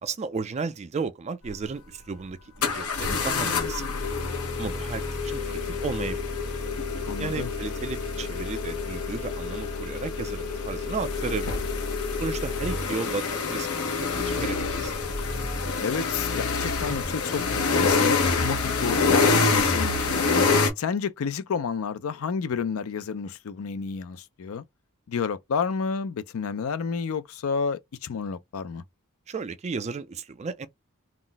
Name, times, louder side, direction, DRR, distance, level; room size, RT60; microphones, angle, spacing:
voice 1, 0.0-3.9 4.6-6.4 7.2-11.6 12.2-13.7 14.0-14.9 29.3-30.7, right 4 dB, 30° right, 0.3 m, -34 dB
sound 1, 1.4-1.5 2.6-20.7, left 4 dB, 85° left, 0.8 m, -26 dB
voice 2, 7.0-7.5 15.8-20.2 20.8-24.6 25.1-28.8, left 6 dB, 70° left, 0.4 m, -30 dB
Sliding door / Squeak, 13.3-19.4, left 2 dB, 30° left, 0.7 m, -46 dB
2.4 x 2.0 x 3.8 m
head